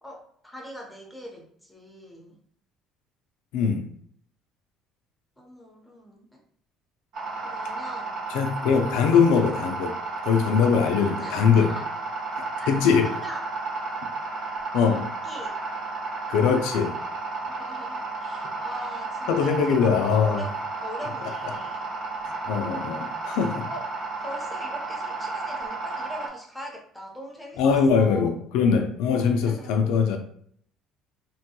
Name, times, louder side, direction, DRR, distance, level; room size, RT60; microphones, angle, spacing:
voice 1, 0.0-2.4 5.4-6.4 7.4-8.2 11.2-11.9 12.5-12.7 13.0-13.4 15.0-15.6 17.5-20.5 20.8-21.8 23.7-23.8 24.2-28.3 29.4-29.7, equal, 5° left, -1 dB, 0.8 m, -41 dB
voice 2, 3.5-3.8 8.3-9.9 10.2-11.7 12.7-13.1 14.7-15.1 16.3-17.0 19.3-20.4 22.2-23.7 27.6-30.2, left 6 dB, 85° left, 5 dB, 0.4 m, -22 dB
sound 1, 7.1-26.3, right 3 dB, 65° right, 1.0 m, -33 dB
3.0 x 2.2 x 2.9 m, 0.62 s
cardioid pair, 130°, 0 cm